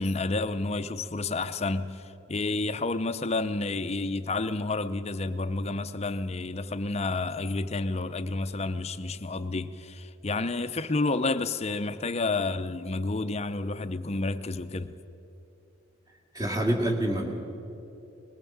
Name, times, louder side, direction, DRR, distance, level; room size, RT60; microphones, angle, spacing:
voice 1, 0.0-14.9, left 3 dB, 30° left, 0.6 m, -30 dB
voice 2, 16.3-17.3, right 1 dB, 20° right, 2.1 m, -26 dB
20.5 x 18.0 x 7.2 m
head